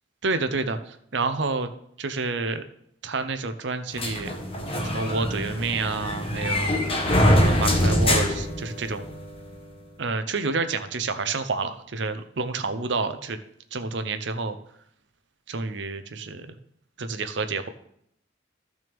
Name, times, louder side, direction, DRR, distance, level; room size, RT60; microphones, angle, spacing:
voice 1, 0.2-1.7 2.0-2.6 3.0-4.4 4.8-6.7 7.4-9.1 10.0-13.4 13.7-14.6 15.5-16.5 17.0-17.7, right 3 dB, 65° right, 10 dB, 0.7 m, -29 dB
sound 1, 4.0-9.2, left 1 dB, 30° left, 1.3 m, -23 dB
14.0 x 6.2 x 3.6 m, 0.72 s
head